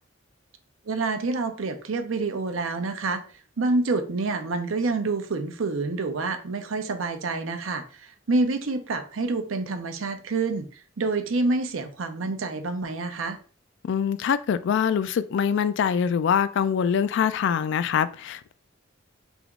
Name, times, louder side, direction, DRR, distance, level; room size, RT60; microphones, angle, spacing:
voice 1, 0.9-3.2 3.6-13.4, right 3 dB, 85° right, 0.6 m, -27 dB
voice 2, 13.9-18.5, left 7 dB, 65° left, 0.3 m, -24 dB
3.5 x 2.9 x 3.6 m
head